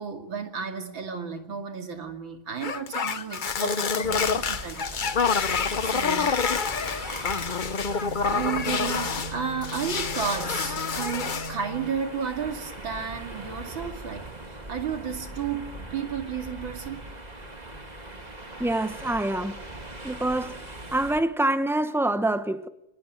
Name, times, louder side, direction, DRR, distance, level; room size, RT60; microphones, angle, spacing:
voice 1, 0.0-5.3 5.8-6.3 8.3-17.1, right 7 dB, 85° right, 3.2 m, -33 dB
octopus unwrapping a cellophane-covered bathtub, 2.6-9.3 9.6-11.6, left 5 dB, 45° left, 0.6 m, -27 dB
sound 1, 4.0-21.2, right 1 dB, 20° right, 2.5 m, -41 dB
sound 2, 7.9-11.9, right 1 dB, 50° right, 5.2 m, -40 dB
voice 2, 18.6-19.6 20.0-22.7, right 1 dB, 5° right, 0.5 m, -26 dB
23.5 x 21.0 x 7.7 m
omnidirectional pair, 2.1 m